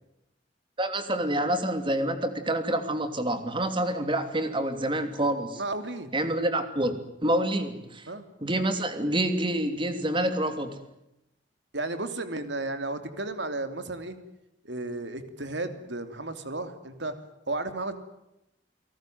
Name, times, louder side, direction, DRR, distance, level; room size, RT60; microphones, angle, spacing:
voice 1, 0.8-5.6 6.1-8.1 8.4-10.8, right 1 dB, 25° right, 9 dB, 3.0 m, -27 dB
voice 2, 5.6-6.1 8.1-8.2 11.7-14.2 14.6-17.2 17.5-17.9, right 2 dB, 70° right, 9 dB, 3.1 m, -33 dB
30.0 x 18.5 x 9.4 m, 0.88 s
head